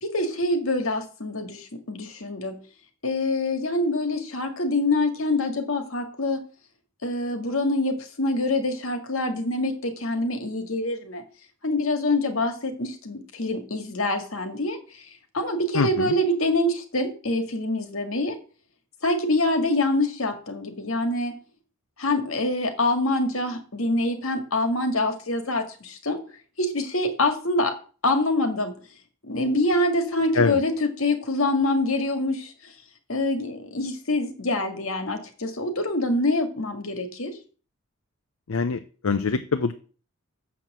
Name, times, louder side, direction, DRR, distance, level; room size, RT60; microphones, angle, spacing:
voice 1, 0.0-2.6 3.0-6.4 7.0-11.2 11.6-14.8 15.3-18.4 19.0-21.3 22.0-26.2 26.6-27.7 28.0-28.7 29.2-32.5 33.1-37.3, left 2 dB, 75° left, 6 dB, 1.9 m, -25 dB
voice 2, 15.7-16.1 30.3-30.6 38.5-39.7, left 4 dB, 90° left, 9 dB, 0.6 m, -24 dB
7.1 x 6.0 x 7.5 m, 0.38 s
head